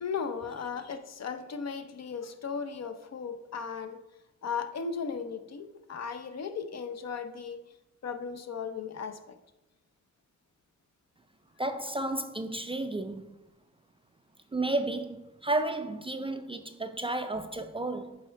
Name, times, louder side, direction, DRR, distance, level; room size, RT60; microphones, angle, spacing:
voice 1, 0.0-4.0 4.4-7.6 8.0-9.4, left 6 dB, 60° left, 0.6 m, -36 dB
voice 2, 11.6-13.3 14.5-18.2, right 2 dB, 20° right, 0.3 m, -32 dB
7.6 x 3.4 x 4.5 m
cardioid pair, 90°, 30 cm